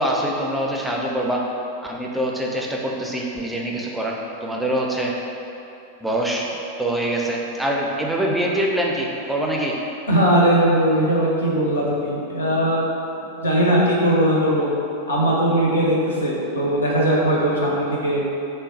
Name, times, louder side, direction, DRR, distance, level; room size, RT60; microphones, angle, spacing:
voice 1, 0.0-1.5 1.8-5.1 6.0-6.5 6.8-9.8, right 1 dB, ahead, -2 dB, 0.4 m, -24 dB
voice 2, 10.1-12.8 13.4-14.7 15.1-18.2, right 1 dB, 70° left, -4 dB, 0.6 m, -19 dB
3.0 x 2.2 x 3.9 m, 2.8 s
figure-of-eight pair, 90°, 0 cm